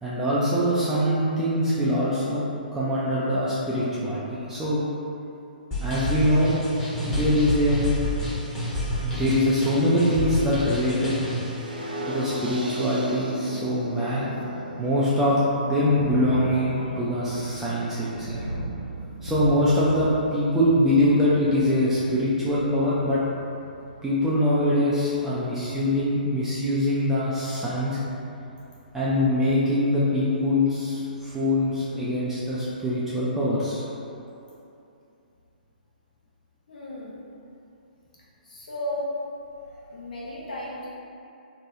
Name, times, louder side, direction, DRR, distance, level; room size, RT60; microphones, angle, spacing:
voice 1, 0.0-2.4 2.7-4.8 5.8-6.5 7.0-7.8 9.0-11.1 12.1-14.3 14.8-18.4 19.2-23.2 24.0-28.0 28.9-33.8, left 1 dB, 5° right, -9 dB, 0.3 m, -23 dB
sound 1, 5.7-11.5, left 1 dB, 15° left, 0.9 m, -29 dB
sound 2, 11.4-17.4, equal, 70° right, 0.5 m, -35 dB
Thunder, 14.7-32.6, right 1 dB, 80° left, 0.5 m, -40 dB
voice 2, 36.7-37.2 38.4-39.2 39.9-40.9, left 1 dB, 60° left, -7 dB, 0.9 m, -34 dB
3.1 x 2.2 x 3.6 m, 2.7 s
figure-of-eight pair, 125°, 5 cm